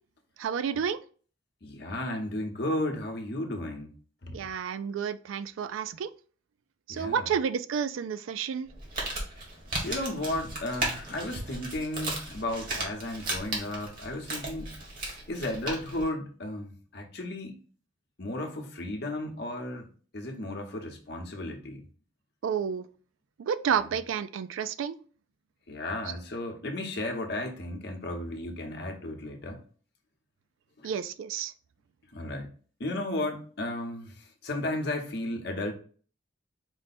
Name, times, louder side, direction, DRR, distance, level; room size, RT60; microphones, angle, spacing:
voice 1, 0.4-1.0 4.3-6.1 6.9-8.7 22.4-22.8 23.4-24.9 30.8-31.5, right 7 dB, 85° right, 13 dB, 0.3 m, -30 dB
voice 2, 1.6-3.9 4.2-4.5 6.9-7.3 9.8-14.8 15.3-17.6 18.2-19.9 20.1-21.8 23.7-23.9 25.7-29.6 30.8-30.9 32.1-32.5 32.8-35.7, left 1 dB, 55° left, 2 dB, 0.9 m, -34 dB
Crumpling crinkling, 8.7-16.1, right 2 dB, 45° right, 1.4 m, -36 dB
4.6 x 2.2 x 4.1 m, 0.41 s
head